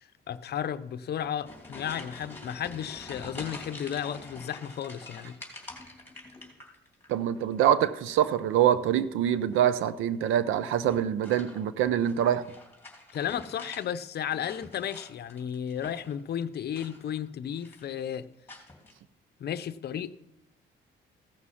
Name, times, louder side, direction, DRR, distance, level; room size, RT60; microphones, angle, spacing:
voice 1, 0.0-5.4 5.6-5.7 13.1-18.3 19.4-20.1, left 9 dB, 55° left, 0.7 m, -34 dB
sound 1, 1.2-7.1 7.4-8.0 9.4-9.8 10.8-13.9 14.2-16.2 16.7-17.3 17.5-18.0 18.5-18.9, left 2 dB, 10° left, 2.9 m, -47 dB
voice 2, 7.1-12.4, right 10 dB, 90° right, 0.6 m, -25 dB
15.5 x 6.1 x 5.7 m
cardioid pair, 90°, 20 cm